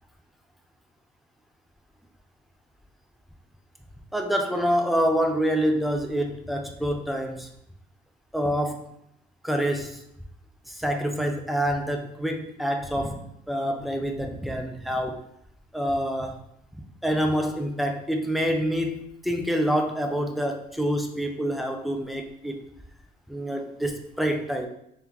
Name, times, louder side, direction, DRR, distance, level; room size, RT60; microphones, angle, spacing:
voice 1, 4.1-7.5 8.3-8.9 9.4-10.0 10.7-15.2 15.7-16.4 17.0-22.6 23.3-24.7, equal, ahead, 4 dB, 0.5 m, -27 dB
3.7 x 3.4 x 2.9 m, 0.75 s
cardioid pair, 110°, 17 cm